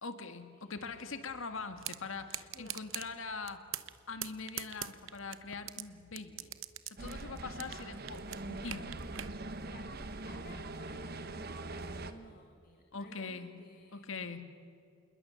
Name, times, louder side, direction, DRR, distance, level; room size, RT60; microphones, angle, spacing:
voice 1, 0.0-3.7 4.1-6.5 6.9-8.9 12.9-13.6 13.9-14.4, left 4 dB, 70° left, 8 dB, 1.7 m, -43 dB
sound 1, 0.7-7.1, left 1 dB, 15° right, 4.6 m, -67 dB
sound 2, 1.8-2.0 2.3-3.1 3.5-4.0 4.2-5.8 6.2-9.3, right 12 dB, 65° right, 0.9 m, -40 dB
voice 2, 2.5-2.9 9.6-14.3, left 1 dB, 40° left, 3 dB, 1.8 m, -56 dB
sound 3, 7.0-12.1, right 2 dB, 45° right, 1.2 m, -42 dB
27.5 x 21.0 x 7.0 m, 2.5 s
head